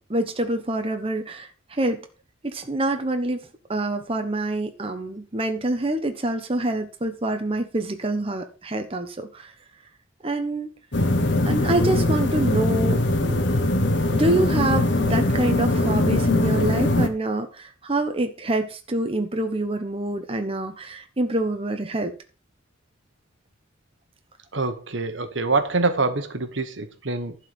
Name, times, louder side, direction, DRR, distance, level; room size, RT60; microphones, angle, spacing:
voice 1, 0.0-2.1 2.4-9.5 10.2-10.7 11.5-13.4 14.1-22.1, right 2 dB, 30° right, 1.0 m, -26 dB
sound 1, 10.9-17.1, left 1 dB, 60° left, 1.3 m, -21 dB
voice 2, 24.5-27.3, right 3 dB, 65° right, 1.3 m, -25 dB
11.5 x 4.7 x 6.9 m
head